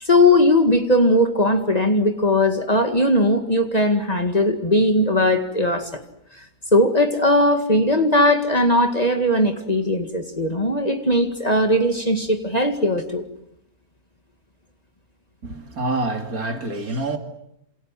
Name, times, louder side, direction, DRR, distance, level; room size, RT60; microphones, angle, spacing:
voice 1, 0.0-6.0 6.7-13.2, left 1 dB, 25° left, 2.1 m, -19 dB
voice 2, 15.4-17.2, right 2 dB, 65° right, 3.1 m, -26 dB
28.0 x 27.5 x 7.6 m
omnidirectional pair, 1.7 m